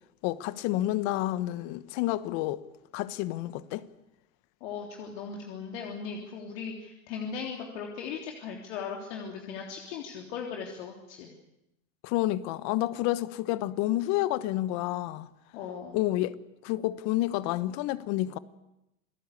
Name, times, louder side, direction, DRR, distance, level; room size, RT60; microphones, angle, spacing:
voice 1, 0.2-2.6 2.9-3.9 12.0-15.3 15.9-16.3 16.6-18.4, left 15 dB, 45° left, 1.2 m, -29 dB
voice 2, 4.6-11.3 15.5-16.0, left 6 dB, 60° left, 3.5 m, -38 dB
28.5 x 18.5 x 8.4 m
supercardioid pair, 135°, 40 cm